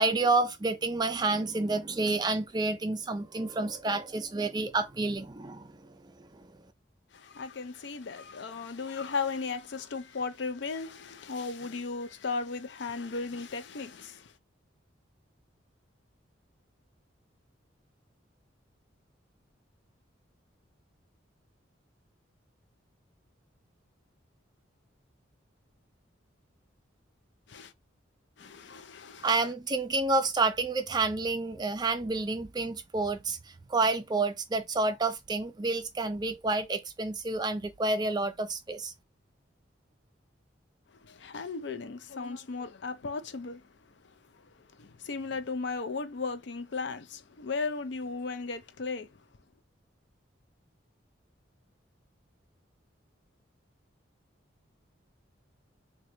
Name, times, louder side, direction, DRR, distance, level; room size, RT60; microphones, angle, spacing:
voice 1, 0.0-5.8 6.0-6.5 29.2-33.4 33.7-38.9, right 3 dB, 20° right, 0.4 m, -29 dB
voice 2, 7.1-14.3 27.5-27.7 28.4-29.5 41.0-43.6 44.8-49.1, left 4 dB, 65° left, 0.5 m, -36 dB
3.8 x 2.2 x 2.9 m
head